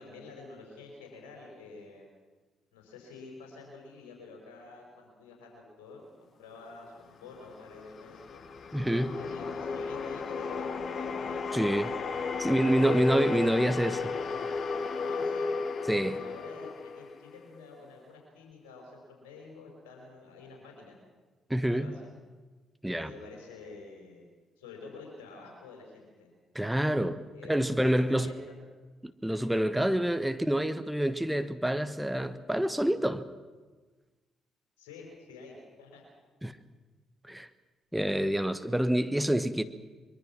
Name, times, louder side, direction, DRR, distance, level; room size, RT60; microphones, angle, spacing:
voice 1, 0.0-2.1 2.7-8.4 9.1-13.1 15.0-15.6 16.1-21.0 21.6-22.1 22.9-24.2 24.6-26.3 27.3-28.6 34.8-36.0, left 3 dB, 70° left, 0 dB, 5.3 m, -48 dB
sound 1, 7.3-17.7, left 5 dB, 50° left, 1.2 m, -34 dB
voice 2, 8.7-9.2 11.5-11.9 12.4-14.1 15.9-16.2 21.5-21.9 22.8-23.1 26.5-28.3 29.0-33.2 36.4-36.6 37.2-37.5 37.9-39.6, right 1 dB, 5° right, 11 dB, 1.2 m, -27 dB
23.5 x 22.5 x 6.0 m, 1.3 s
figure-of-eight pair, 40°, 0 cm